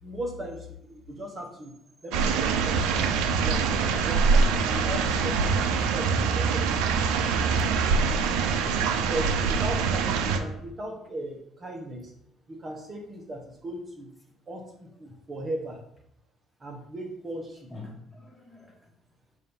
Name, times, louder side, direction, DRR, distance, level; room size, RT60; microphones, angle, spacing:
voice 1, 0.0-1.7 2.0-3.1 3.4-6.8 9.1-12.1 12.5-14.1 14.5-15.8 16.6-17.7, right 1 dB, 35° right, 2 dB, 1.1 m, -37 dB
sound 1, 2.1-10.4, right 5 dB, 85° right, 0.5 m, -24 dB
voice 2, 8.0-8.9 17.7-18.9, left 2 dB, 10° left, 1 dB, 1.4 m, -47 dB
6.3 x 2.7 x 5.5 m, 0.72 s
supercardioid pair, 85°, 0 cm